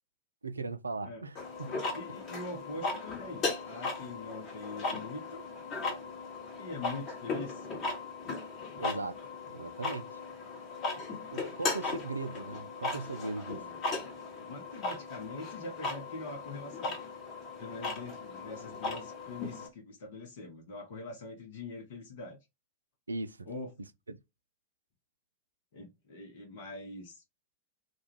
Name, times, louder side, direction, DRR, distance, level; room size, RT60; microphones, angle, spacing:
voice 1, 0.4-1.8 8.8-9.2 9.5-10.2 11.3-13.7 23.1-23.5 24.1-24.2, right 3 dB, 80° right, 0.3 m, -38 dB
sound 1, 1.4-19.7, left 3 dB, 30° left, 1.0 m, -37 dB
voice 2, 1.9-5.5 6.6-7.7 10.9-11.2 13.5-13.8 14.5-17.0 17.6-22.4 23.5-23.7 25.7-27.2, left 3 dB, 55° left, 0.8 m, -43 dB
2.3 x 2.3 x 2.9 m
figure-of-eight pair, 90°, 0 cm